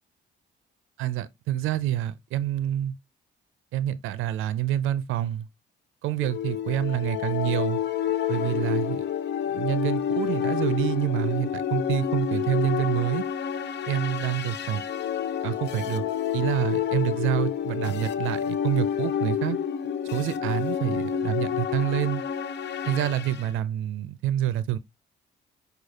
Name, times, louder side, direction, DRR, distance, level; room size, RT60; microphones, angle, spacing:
voice 1, 1.0-2.9 3.7-5.5 6.0-7.8 8.3-9.0 9.5-13.2 13.9-14.8 15.4-16.0 16.3-19.6 20.1-22.2 22.9-24.8, right 12 dB, 90° right, 0.5 m, -27 dB
sound 1, 6.2-23.5, left 9 dB, 60° left, 0.6 m, -29 dB
6.4 x 2.4 x 2.8 m
cardioid pair, 90°, 20 cm